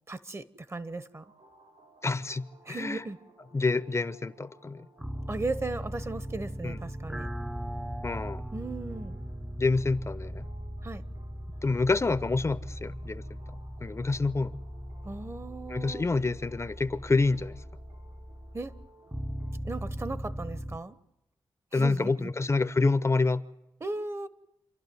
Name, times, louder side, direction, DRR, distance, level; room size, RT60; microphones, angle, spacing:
voice 1, 0.1-1.2 2.7-3.2 5.3-7.3 8.5-9.2 10.8-11.0 15.0-16.1 18.5-18.7 19.6-20.9 21.7-22.3 23.8-24.3, right 3 dB, 30° right, 15 dB, 1.1 m, -36 dB
sound 1, 1.1-19.6, right 2 dB, 75° right, 3.3 m, -59 dB
voice 2, 2.0-3.0 3.5-4.9 6.6-6.8 8.0-8.4 9.6-10.5 11.6-13.4 13.8-14.6 15.7-17.6 21.7-23.4, left 3 dB, 30° left, 15 dB, 0.8 m, -27 dB
sound 2, 5.0-20.8, equal, 5° right, 0.8 m, -39 dB
28.0 x 11.5 x 9.5 m, 0.90 s
cardioid pair, 65°, 9 cm